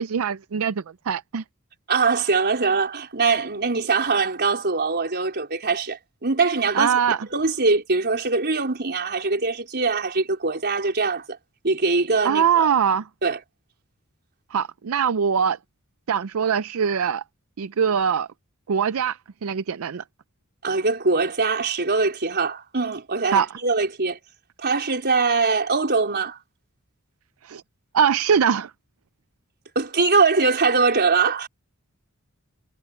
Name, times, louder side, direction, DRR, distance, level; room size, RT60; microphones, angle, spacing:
voice 1, 0.0-1.4 6.7-7.2 12.2-13.0 14.5-15.6 16.1-17.2 17.6-18.3 18.7-20.0 23.3-23.5 27.4-27.6 27.9-28.7, right 7 dB, 70° right, 0.5 m, -22 dB
voice 2, 1.9-11.4 11.6-12.7 13.2-13.4 20.6-24.2 24.6-26.4 29.7-31.5, right 4 dB, 50° right, 4.3 m, -22 dB
head